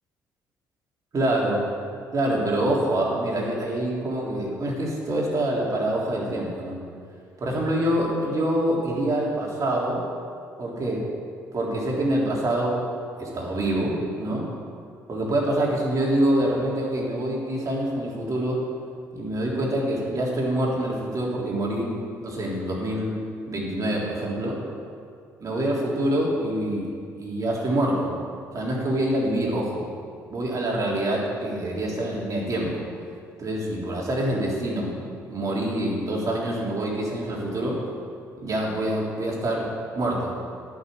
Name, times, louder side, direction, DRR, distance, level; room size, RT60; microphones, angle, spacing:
voice 1, 1.1-1.7 2.1-6.8 7.4-10.0 10.6-11.1 11.5-12.9 13.2-14.5 15.1-18.6 19.1-21.9 22.2-23.2 23.5-24.6 25.4-26.9 27.2-28.1 28.5-29.9 30.3-32.8 33.4-34.9 35.3-37.9 38.4-40.3, right 1 dB, 45° right, -3 dB, 3.5 m, -25 dB
11.5 x 6.4 x 8.7 m, 2.3 s
hypercardioid pair, 50°, 8 cm